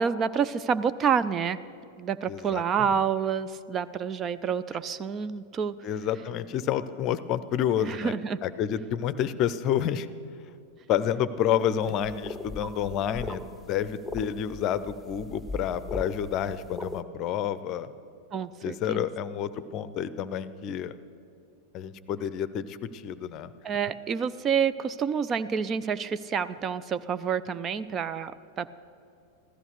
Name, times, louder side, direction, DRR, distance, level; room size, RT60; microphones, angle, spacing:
voice 1, 0.0-1.6 2.0-5.8 7.8-8.4 18.3-19.0 23.6-28.7, right 7 dB, 25° right, 13 dB, 0.4 m, -28 dB
voice 2, 2.3-2.6 2.9-3.0 5.8-8.1 8.4-10.1 10.9-17.9 18.6-21.0 21.7-23.5, left 9 dB, 35° left, 15 dB, 0.6 m, -29 dB
sound 1, 11.9-17.0, left 2 dB, ahead, 1.0 m, -39 dB
15.5 x 13.5 x 6.6 m, 2.5 s
figure-of-eight pair, 90°, 0 cm